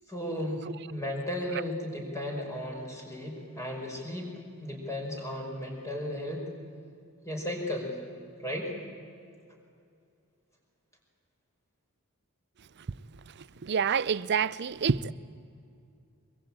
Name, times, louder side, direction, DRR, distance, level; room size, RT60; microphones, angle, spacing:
voice 1, 0.1-4.3 4.6-6.5 7.2-8.0 8.4-8.7, left 1 dB, 15° left, 5.2 m, -35 dB
voice 2, 13.3-15.1, right 6 dB, 50° right, 0.5 m, -28 dB
23.0 x 23.0 x 8.8 m
head